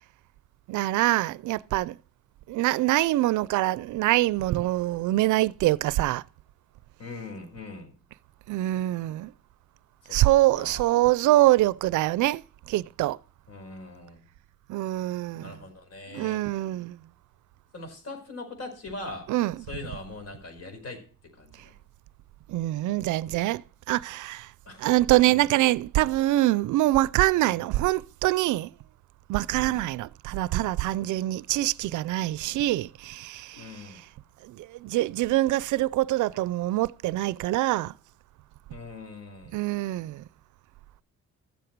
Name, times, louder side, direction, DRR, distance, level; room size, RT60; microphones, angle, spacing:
voice 1, 0.7-2.0 2.5-6.2 8.5-9.3 10.1-13.2 14.7-15.5 16.1-17.0 19.3-19.6 22.5-24.5 24.8-28.7 29.3-33.7 34.4-37.9 39.5-40.2, right 16 dB, 80° right, 0.5 m, -24 dB
voice 2, 7.0-7.9 10.0-10.2 10.5-11.1 13.5-14.2 15.3-16.4 17.7-19.3 19.7-21.0 21.3-21.8 24.6-25.5 27.4-27.6 29.5-29.9 33.5-34.1 38.7-39.6, left 3 dB, 55° left, 5.1 m, -41 dB
13.5 x 7.9 x 4.6 m
cardioid pair, 90°, 30 cm